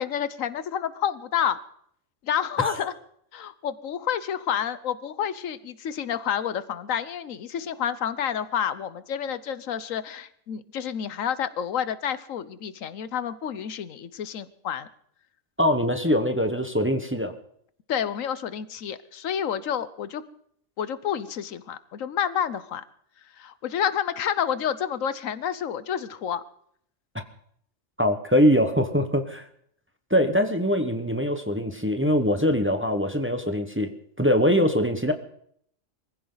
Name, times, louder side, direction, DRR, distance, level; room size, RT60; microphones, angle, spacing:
voice 1, 0.0-1.6 2.2-2.9 3.3-14.9 17.9-20.2 20.8-22.8 23.4-26.4, left 9 dB, 85° left, 15 dB, 1.2 m, -29 dB
voice 2, 15.6-17.3 28.0-29.5 30.1-33.9 34.2-35.1, equal, 10° right, 7 dB, 1.1 m, -23 dB
23.0 x 15.5 x 4.0 m, 0.66 s
omnidirectional pair, 1.3 m